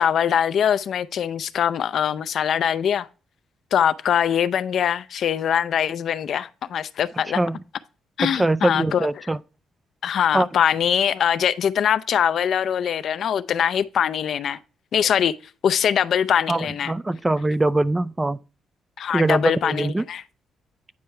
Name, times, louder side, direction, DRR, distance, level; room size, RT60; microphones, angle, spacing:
voice 1, 0.0-3.1 3.7-7.4 8.2-9.3 10.0-14.6 14.9-15.3 15.6-16.9 19.0-20.2, left 9 dB, 65° left, 0.4 m, -22 dB
voice 2, 8.2-9.4 10.3-10.5 16.5-18.4 19.1-20.1, right 2 dB, 15° right, 0.3 m, -22 dB
9.5 x 4.6 x 3.2 m
cardioid pair, 90°, 0 cm